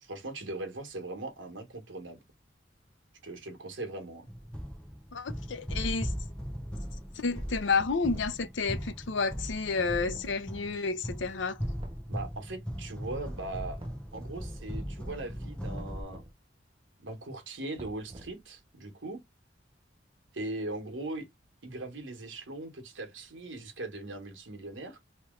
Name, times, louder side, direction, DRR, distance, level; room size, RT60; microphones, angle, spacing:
voice 1, 0.0-2.2 3.2-4.3 12.1-13.8 14.1-16.2 17.0-19.2 20.3-21.3 21.6-25.0, right 2 dB, 90° right, 1.3 m, -40 dB
sound 1, 4.3-16.0, equal, 5° left, 0.7 m, -38 dB
voice 2, 5.1-6.1 7.1-11.6, left 4 dB, 80° left, 0.6 m, -30 dB
sound 2, 7.8-8.4 9.8-10.3 11.8-12.4 13.8-14.4 15.7-16.3 17.8-18.5, right 1 dB, 25° right, 0.6 m, -48 dB
3.0 x 3.0 x 3.7 m
head